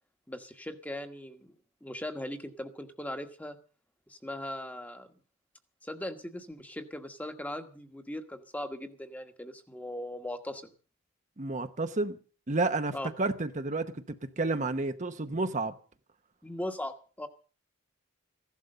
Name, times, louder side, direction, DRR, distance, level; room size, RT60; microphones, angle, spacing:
voice 1, 0.3-1.5 1.8-3.6 4.1-5.1 5.8-10.7 12.9-13.1 16.4-17.3, left 1 dB, 5° left, 1.3 m, -39 dB
voice 2, 11.4-12.2 12.5-15.7, right 3 dB, 35° right, 0.9 m, -31 dB
15.5 x 12.0 x 6.7 m
head